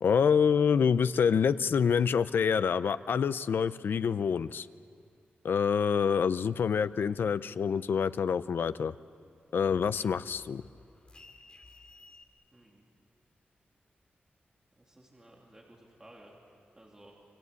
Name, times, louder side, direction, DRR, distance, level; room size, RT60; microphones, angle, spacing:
voice 1, 0.0-4.7 5.4-8.9 9.5-10.6, left 6 dB, 75° left, 14 dB, 0.6 m, -26 dB
sound 1, 9.2-12.2, left 3 dB, 30° left, 2.4 m, -56 dB
voice 2, 12.5-12.8 14.8-16.3 16.7-17.1, right 1 dB, 15° right, -2 dB, 2.9 m, -56 dB
29.0 x 23.5 x 8.3 m, 2.5 s
wide cardioid pair, 175°, 4 cm